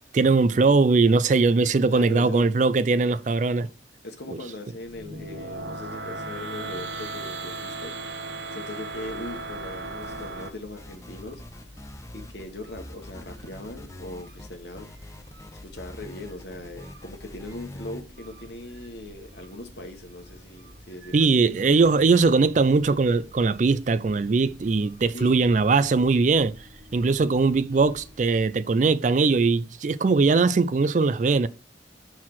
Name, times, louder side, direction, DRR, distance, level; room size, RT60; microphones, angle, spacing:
voice 1, 0.1-3.7 21.1-26.5 26.9-31.5, right 4 dB, 40° right, 0.4 m, -20 dB
voice 2, 1.9-2.5 4.0-8.0 8.3-11.4 12.1-14.9 15.5-21.4 25.1-25.5, left 2 dB, 65° left, 1.3 m, -40 dB
sound 1, 4.8-10.5, right 2 dB, 75° right, 1.3 m, -36 dB
sound 2, 8.8-28.5, equal, 60° right, 1.2 m, -50 dB
sound 3, 10.0-10.5 10.8-12.5 12.8-18.0, left 1 dB, 15° left, 0.5 m, -44 dB
5.8 x 4.7 x 5.9 m
head